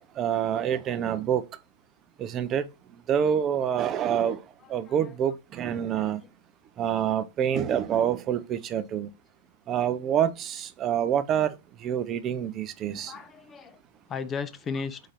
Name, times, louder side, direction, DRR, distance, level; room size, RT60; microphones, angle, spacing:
voice 1, 0.2-1.4 2.2-2.6 3.1-4.4 4.7-6.2 6.8-9.1 9.7-11.5 11.8-13.1, right 9 dB, 30° right, 0.5 m, -26 dB
voice 2, 12.9-13.8 14.1-15.0, left 5 dB, 25° left, 0.5 m, -35 dB
4.1 x 3.7 x 3.3 m
hypercardioid pair, 125°, 0 cm